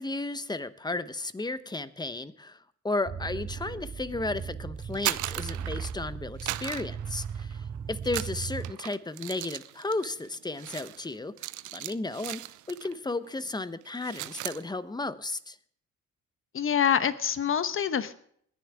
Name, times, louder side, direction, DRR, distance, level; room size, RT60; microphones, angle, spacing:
voice 1, 0.0-2.6 2.8-7.6 7.9-11.3 11.7-12.4 12.7-15.6, left 2 dB, 15° left, 14 dB, 0.9 m, -34 dB
sound 1, 3.1-8.7, right 7 dB, 30° right, 0.5 m, -37 dB
sound 2, 4.8-6.1 6.4-7.6 8.0-13.0 13.2-13.5 13.8-14.6, right 16 dB, 85° right, 0.6 m, -37 dB
voice 2, 16.5-18.1, left 8 dB, 45° left, 12 dB, 1.1 m, -26 dB
21.0 x 10.5 x 3.6 m, 0.63 s
cardioid pair, 90°, 30 cm